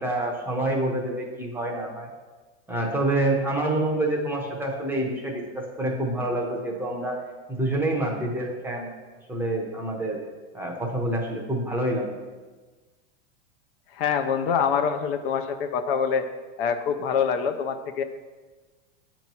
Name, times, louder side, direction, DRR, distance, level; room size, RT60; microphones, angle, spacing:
voice 1, 0.0-2.1 2.7-7.2 7.5-8.9 9.3-10.2 10.5-12.2, right 1 dB, 5° right, -1 dB, 0.7 m, -27 dB
voice 2, 13.9-16.3 16.6-18.0, left 6 dB, 55° left, 8 dB, 0.5 m, -25 dB
8.3 x 3.0 x 5.4 m, 1.3 s
supercardioid pair, 155°, 34 cm